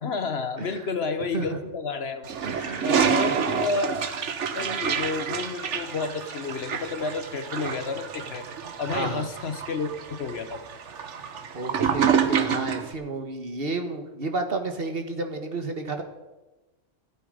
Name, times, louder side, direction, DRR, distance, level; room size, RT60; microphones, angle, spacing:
voice 1, 0.0-2.3 2.8-4.1 4.5-8.5 8.8-10.6, left 4 dB, 60° left, 10 dB, 1.1 m, -30 dB
Toilet flush, 2.2-12.9, right 7 dB, 70° right, 1.3 m, -28 dB
voice 2, 2.4-3.7 8.8-9.3 11.5-16.0, right 3 dB, 50° right, 6 dB, 1.6 m, -32 dB
15.0 x 13.0 x 5.1 m, 1.1 s
omnidirectional pair, 1.3 m